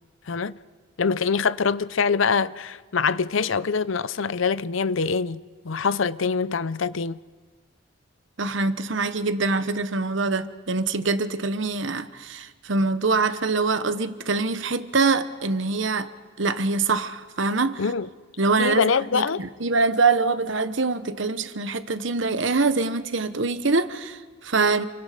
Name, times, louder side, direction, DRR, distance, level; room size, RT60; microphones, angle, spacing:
voice 1, 0.3-0.6 1.0-7.2 17.8-18.1 18.6-19.4, left 5 dB, 75° left, 0.6 m, -24 dB
voice 2, 8.4-16.1 16.4-17.8 18.4-24.9, right 3 dB, 65° right, 1.1 m, -24 dB
29.5 x 24.0 x 5.1 m
head